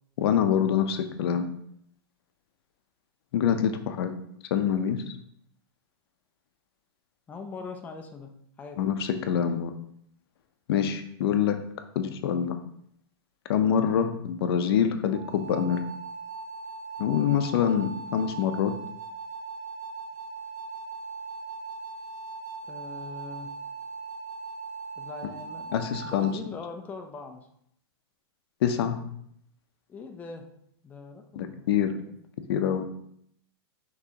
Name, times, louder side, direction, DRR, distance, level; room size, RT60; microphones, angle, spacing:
voice 1, 0.2-1.5 3.3-4.1 4.5-5.0 8.8-9.7 10.7-11.6 12.0-12.6 13.5-15.8 17.0-18.7 25.7-26.3 28.6-29.0 31.4-31.9 32.5-32.9, left 8 dB, 70° left, 8 dB, 0.6 m, -25 dB
voice 2, 7.3-8.3 8.6-8.8 22.7-23.5 25.0-25.7 26.0-27.4 29.9-30.5 30.8-32.2, left 4 dB, 10° left, 3 dB, 0.4 m, -41 dB
sound 1, 15.1-26.4, right 4 dB, 45° right, 0.5 m, -39 dB
6.0 x 3.1 x 2.8 m, 0.69 s
supercardioid pair, 145°, 13 cm